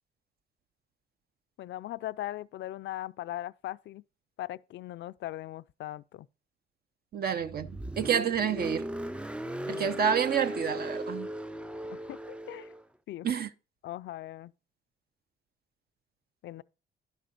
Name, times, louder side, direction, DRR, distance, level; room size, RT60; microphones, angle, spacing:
voice 1, 1.6-4.0 4.4-6.3 9.7-10.0 11.9-12.7 13.1-13.3 13.8-14.5 16.4-16.6, left 14 dB, 65° left, 0.4 m, -39 dB
voice 2, 7.1-8.9 9.7-11.3 13.2-13.5, right 8 dB, 50° right, 0.7 m, -29 dB
Car, 7.4-12.8, equal, 5° right, 0.3 m, -37 dB
11.0 x 4.9 x 5.2 m
cardioid pair, 90°, 20 cm